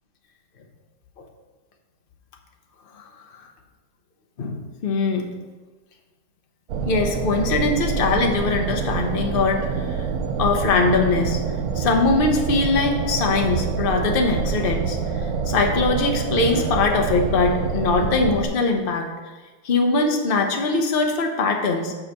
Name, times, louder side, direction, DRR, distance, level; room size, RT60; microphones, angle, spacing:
voice 1, 4.4-5.4 6.8-10.1 10.4-11.4 11.8-19.1 19.6-21.9, left 3 dB, 65° left, 3 dB, 0.5 m, -22 dB
sound 1, 6.7-18.5, right 6 dB, 65° right, 0.9 m, -26 dB
6.2 x 4.8 x 6.6 m, 1.3 s
omnidirectional pair, 2.1 m